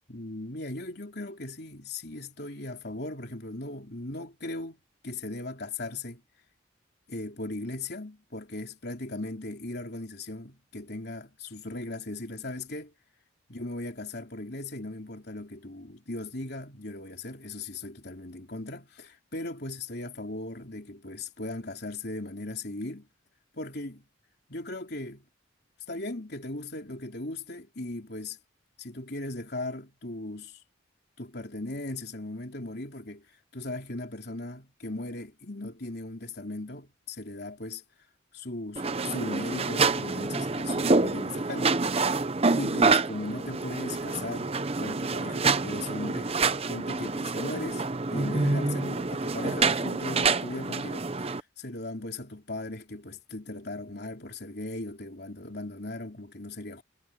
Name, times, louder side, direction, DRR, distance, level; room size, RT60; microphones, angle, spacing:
voice 1, 0.1-6.2 7.1-12.9 13.5-23.1 23.5-24.1 24.5-25.2 25.9-28.4 28.8-30.6 31.2-33.3 33.5-37.8 38.3-41.8 42.5-46.3 46.7-56.8, left 2 dB, 55° left, 3.7 m, -38 dB
sound 1, 38.8-51.4, right 3 dB, 30° right, 0.7 m, -27 dB
head